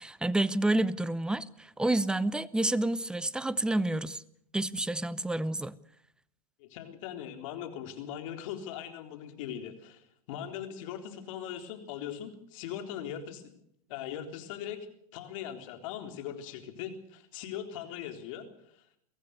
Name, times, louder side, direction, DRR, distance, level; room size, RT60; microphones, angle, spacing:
voice 1, 0.0-4.2 4.5-5.7, right 2 dB, 5° right, 0.8 m, -29 dB
voice 2, 6.6-13.5 13.9-14.9 15.1-18.5 18.7-18.8, left 9 dB, 60° left, 3.9 m, -40 dB
23.0 x 16.0 x 8.1 m
hypercardioid pair, 110°, 19 cm